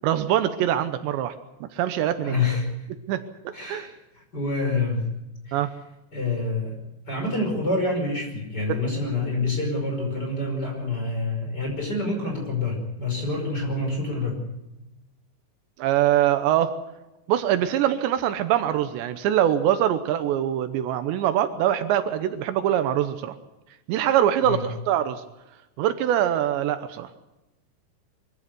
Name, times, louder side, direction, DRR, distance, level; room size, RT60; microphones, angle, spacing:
voice 1, 0.0-1.3 1.6-2.3 3.1-3.9 5.5-5.7 15.8-16.8 17.3-23.3 23.9-25.2 25.8-27.1, right 11 dB, 80° right, 10 dB, 3.1 m, -23 dB
voice 2, 2.2-2.7 3.5-3.9 4.3-5.0 5.5-5.6 6.1-6.8 7.1-14.4 24.4-24.7, left 3 dB, 20° left, 2 dB, 5.5 m, -27 dB
23.5 x 15.0 x 8.3 m, 0.98 s
omnidirectional pair, 5.2 m